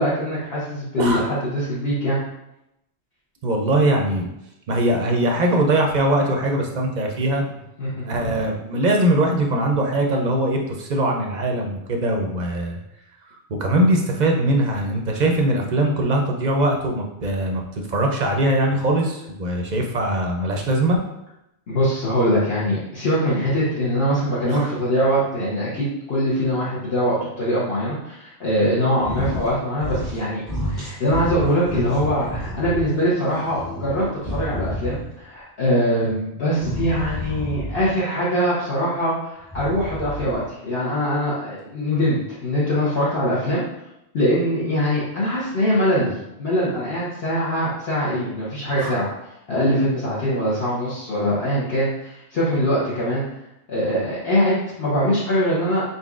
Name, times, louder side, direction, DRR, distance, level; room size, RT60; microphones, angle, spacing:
voice 1, 0.0-2.2 7.8-7.9 21.7-30.4 30.7-43.6 44.1-49.1 49.5-53.2 53.7-55.8, equal, 60° left, -9 dB, 1.2 m, -22 dB
voice 2, 3.4-4.3 4.7-7.4 8.0-12.8 13.6-17.6 17.9-21.0 24.5-24.7 36.0-36.1 48.8-49.0, right 1 dB, 50° right, 1 dB, 0.5 m, -21 dB
sound 1, 29.0-29.5 29.8-30.2 30.5-32.8 33.3-35.2 36.6-38.0 39.4-40.5, left 1 dB, 40° left, 1.5 m, -30 dB
4.0 x 4.0 x 2.4 m, 0.86 s
omnidirectional pair, 1.2 m